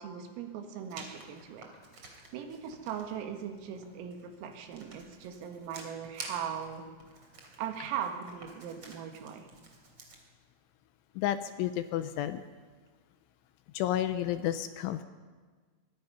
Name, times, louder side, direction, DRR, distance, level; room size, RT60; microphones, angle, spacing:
voice 1, 0.0-1.7 2.0-6.9 7.6-9.5, right 8 dB, 80° right, 5 dB, 4.5 m, -39 dB
Writing, 0.9-10.2, right 3 dB, 30° right, 3.3 m, -50 dB
voice 2, 11.2-12.4 13.7-15.0, left 12 dB, 80° left, 11 dB, 2.9 m, -31 dB
24.0 x 22.0 x 5.7 m, 1.5 s
omnidirectional pair, 6.0 m